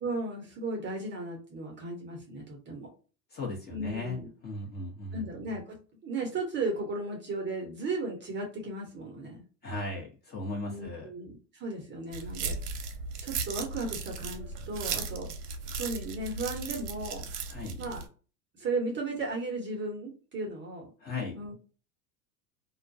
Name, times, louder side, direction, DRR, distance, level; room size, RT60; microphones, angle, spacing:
voice 1, 0.0-2.9 3.7-4.3 5.1-9.4 10.7-12.9 13.2-15.3 15.8-17.2 17.8-18.0 18.6-20.9 21.3-21.5, right 2 dB, 25° right, 0 dB, 0.8 m, -35 dB
voice 2, 3.3-5.3 9.6-11.1 17.5-17.8 21.0-21.4, left 2 dB, 20° left, -1 dB, 0.9 m, -37 dB
sound 1, 12.1-18.1, right 5 dB, 70° right, 0.8 m, -36 dB
2.3 x 2.1 x 2.5 m, 0.36 s
hypercardioid pair, 110°, 48 cm